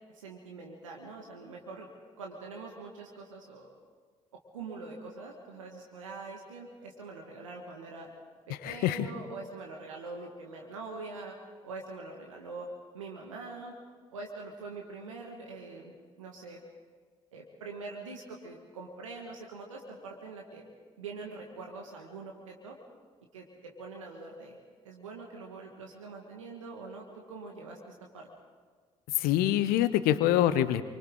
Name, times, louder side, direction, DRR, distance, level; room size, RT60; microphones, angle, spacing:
voice 1, 0.1-1.9 2.2-3.7 4.5-8.1 8.5-11.3 11.6-12.7 12.9-13.8 14.1-15.9 16.2-16.6 17.3-20.6 21.0-22.8 23.3-24.6 24.8-28.3, right 3 dB, 85° right, 0 dB, 1.8 m, -44 dB
voice 2, 8.5-9.1 29.1-30.8, left 12 dB, 65° left, 14 dB, 0.9 m, -25 dB
30.0 x 24.5 x 3.9 m, 1.5 s
figure-of-eight pair, 50°, 16 cm